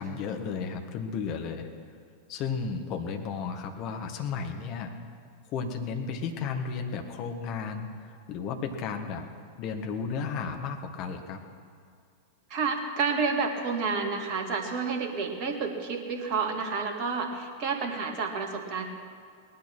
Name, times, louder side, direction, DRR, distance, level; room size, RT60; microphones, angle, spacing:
voice 1, 0.0-1.7 2.3-4.9 5.5-9.3 9.6-11.4, left 5 dB, 40° left, 5 dB, 1.6 m, -33 dB
voice 2, 12.5-18.8, right 5 dB, 45° right, 4 dB, 2.0 m, -30 dB
18.5 x 11.5 x 6.1 m, 2.3 s
figure-of-eight pair, 90°, 0 cm